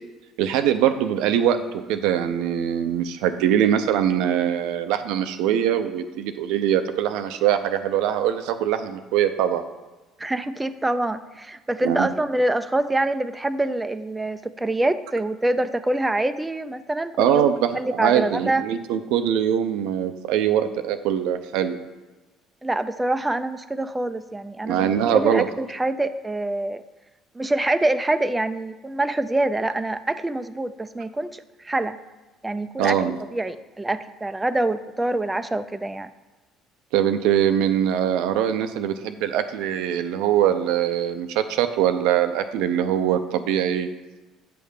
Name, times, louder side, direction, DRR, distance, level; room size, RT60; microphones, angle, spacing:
voice 1, 0.4-1.6 1.9-9.6 11.8-12.1 17.2-21.8 24.6-25.5 32.8-33.2 36.9-43.9, right 10 dB, 75° right, 9 dB, 0.5 m, -22 dB
voice 2, 10.2-17.4 17.7-18.6 22.6-26.8 27.4-32.0 32.4-33.0 33.3-36.1, right 2 dB, 15° right, 10 dB, 0.4 m, -25 dB
8.5 x 3.4 x 6.4 m, 1.2 s
hypercardioid pair, 65°, 0 cm